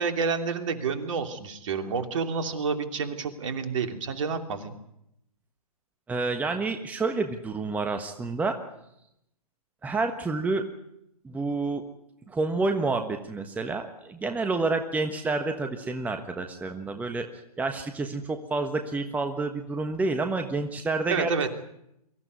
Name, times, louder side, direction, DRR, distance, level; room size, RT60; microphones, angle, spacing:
voice 1, 0.0-4.7 21.1-21.5, right 5 dB, 55° right, 6 dB, 3.0 m, -29 dB
voice 2, 6.1-8.6 9.8-10.6 11.2-11.8 12.3-17.3 17.6-21.3, right 3 dB, 10° right, 6 dB, 1.3 m, -29 dB
23.5 x 15.0 x 9.6 m, 0.81 s
figure-of-eight pair, 125°, 20 cm